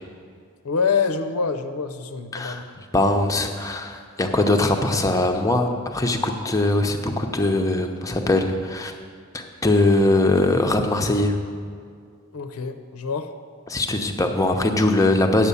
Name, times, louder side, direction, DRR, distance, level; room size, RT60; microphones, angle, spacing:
voice 1, 0.6-2.7 12.3-13.3, left 5 dB, 80° left, 8 dB, 0.7 m, -25 dB
voice 2, 2.3-2.6 2.9-8.9 9.3-11.4 13.7-15.5, left 2 dB, 15° left, 4 dB, 0.7 m, -21 dB
9.4 x 7.3 x 7.0 m, 2.2 s
head